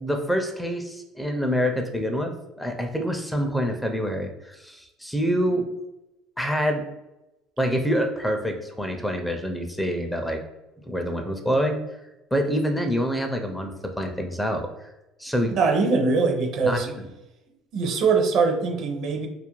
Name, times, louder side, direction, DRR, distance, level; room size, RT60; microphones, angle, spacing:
voice 1, 0.0-5.7 6.4-6.8 7.6-10.4 10.9-11.8 12.3-14.7 15.2-15.6 16.6-17.0, equal, 5° left, 4 dB, 0.4 m, -26 dB
voice 2, 15.5-16.9 17.7-19.3, right 4 dB, 60° right, 3 dB, 0.5 m, -22 dB
2.3 x 2.1 x 3.0 m, 0.96 s
supercardioid pair, 90°, 0 cm